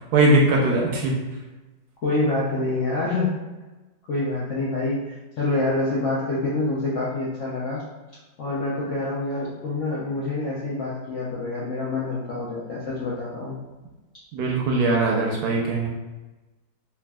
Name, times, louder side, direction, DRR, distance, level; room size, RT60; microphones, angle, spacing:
voice 1, 0.1-1.2 14.3-15.9, right 2 dB, 70° right, -2 dB, 1.0 m, -20 dB
voice 2, 2.0-3.3 4.1-7.8 8.4-13.6, left 2 dB, 70° left, -7 dB, 0.7 m, -26 dB
3.3 x 2.5 x 2.2 m, 1.2 s
omnidirectional pair, 1.9 m